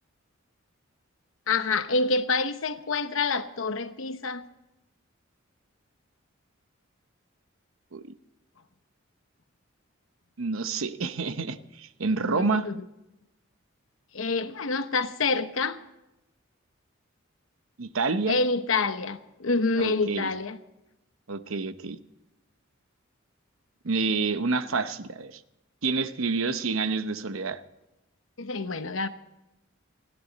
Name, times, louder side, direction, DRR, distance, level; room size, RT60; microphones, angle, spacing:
voice 1, 1.5-4.4 12.3-12.7 14.1-15.8 18.3-20.6 28.4-29.1, left 3 dB, 70° left, 1.0 m, -27 dB
voice 2, 10.4-12.7 17.8-18.4 19.8-20.3 21.3-22.0 23.8-25.4 25.8-27.6, right 4 dB, 75° right, 0.9 m, -28 dB
28.5 x 10.5 x 4.1 m
head